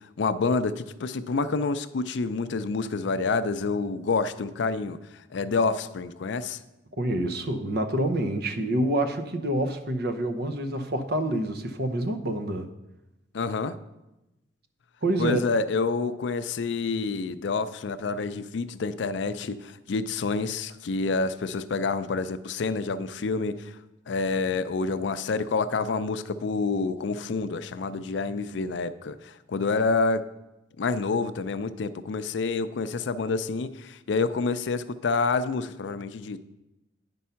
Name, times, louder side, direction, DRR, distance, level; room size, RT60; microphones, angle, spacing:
voice 1, 0.2-6.6 13.3-13.8 15.2-23.8 24.1-30.2 30.8-36.4, left 4 dB, 65° left, 13 dB, 0.4 m, -28 dB
voice 2, 7.0-12.7 15.0-15.4, right 1 dB, 55° right, 7 dB, 0.7 m, -27 dB
9.4 x 5.3 x 5.6 m, 0.98 s
head